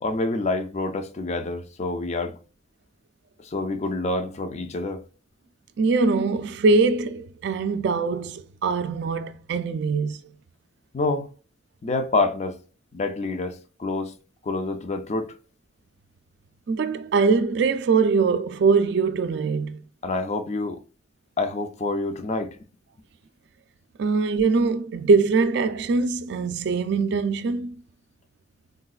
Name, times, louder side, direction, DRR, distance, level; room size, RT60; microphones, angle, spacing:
voice 1, 0.0-2.4 3.4-5.0 10.9-11.3 11.8-12.6 12.9-14.1 14.4-15.3 20.0-20.8 21.4-22.6, left 2 dB, 40° left, 0.4 m, -27 dB
voice 2, 5.8-10.2 16.7-19.8 24.0-27.8, right 4 dB, 65° right, 0.4 m, -22 dB
3.8 x 2.3 x 2.3 m
head